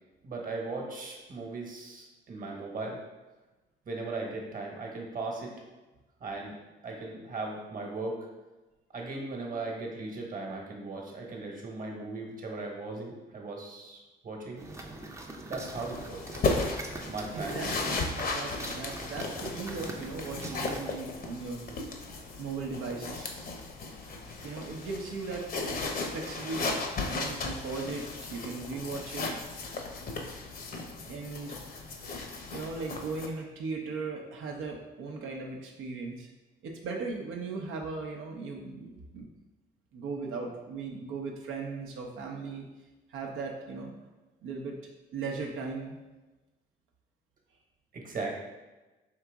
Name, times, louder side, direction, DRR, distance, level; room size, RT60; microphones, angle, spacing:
voice 1, 0.2-3.0 3.9-5.5 6.2-6.6 6.8-8.3 8.9-14.6 15.5-16.6 17.1-17.7 47.9-48.3, right 3 dB, 45° right, 0 dB, 1.2 m, -38 dB
sound 1, 14.6-21.0, right 2 dB, 15° right, 0.5 m, -43 dB
sound 2, 15.7-33.3, left 3 dB, 45° left, 0.7 m, -36 dB
voice 2, 17.3-21.9 22.4-23.3 24.4-25.5 26.0-29.3 31.0-31.6 32.5-36.3 36.6-39.3 39.9-42.7 43.1-43.9 44.4-44.8 45.1-46.0, right 4 dB, 80° right, 0 dB, 0.7 m, -38 dB
4.7 x 2.9 x 3.5 m, 1.1 s
cardioid pair, 90°, 20 cm